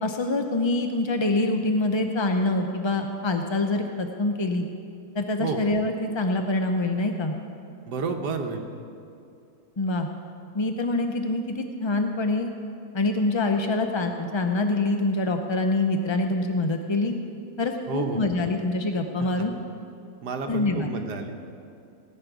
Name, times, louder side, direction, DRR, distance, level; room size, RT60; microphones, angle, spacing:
voice 1, 0.0-4.7 5.1-7.4 9.8-10.1 10.5-12.5 12.9-17.2 17.6-19.5 20.5-20.9, left 2 dB, 45° left, 5 dB, 0.3 m, -25 dB
voice 2, 7.9-8.7 17.9-18.2 19.2-19.3 20.2-21.4, right 4 dB, 90° right, 4 dB, 1.5 m, -30 dB
17.5 x 6.6 x 9.2 m, 2.5 s
omnidirectional pair, 1.7 m